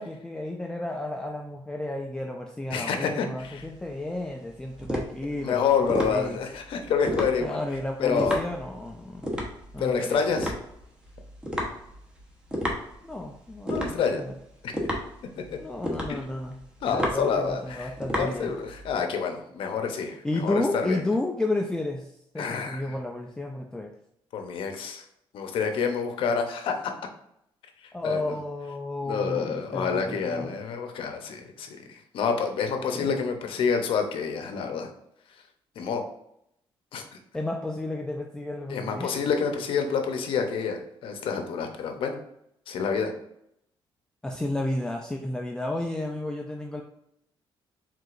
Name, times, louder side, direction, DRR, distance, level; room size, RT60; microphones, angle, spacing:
voice 1, 0.0-5.6 6.0-6.4 7.4-9.3 9.7-10.2 13.0-14.3 15.6-16.6 16.9-18.6 20.2-23.9 27.9-30.5 32.9-33.1 37.3-39.2 44.2-46.8, left 2 dB, 10° left, 1 dB, 0.4 m, -32 dB
voice 2, 2.7-3.7 5.4-7.6 8.0-8.4 9.8-10.5 13.7-14.2 14.6-14.9 16.1-16.2 16.8-21.0 22.4-22.9 24.3-25.0 25.3-26.9 27.8-28.4 29.0-34.9 35.8-36.0 36.9-37.0 38.7-42.2 42.7-43.1, left 6 dB, 70° left, 5 dB, 0.8 m, -28 dB
sound 1, 3.4-19.0, equal, 10° right, 1.0 m, -33 dB
4.8 x 3.7 x 2.5 m, 0.77 s
cardioid pair, 130°, 9 cm